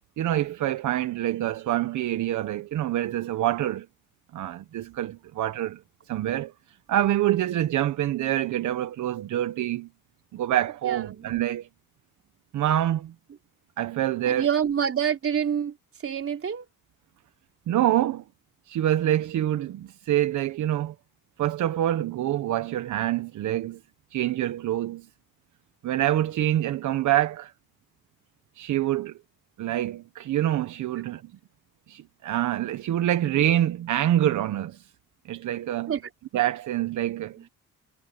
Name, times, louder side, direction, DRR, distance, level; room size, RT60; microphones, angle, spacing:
voice 1, 0.2-3.9 4.3-5.8 6.1-6.5 6.9-9.9 10.3-11.7 12.5-13.1 13.8-14.5 17.7-18.2 18.7-20.9 21.4-23.8 24.1-25.1 25.8-27.5 28.6-29.2 29.6-31.3 31.9-34.9 35.3-35.9 36.3-37.5, right 12 dB, 75° right, 1.3 m, -26 dB
voice 2, 10.8-11.4 14.3-15.8 16.0-16.7 35.9-36.0 37.4-37.5, right 8 dB, 50° right, 3.9 m, -27 dB
cardioid pair, 90°, 30 cm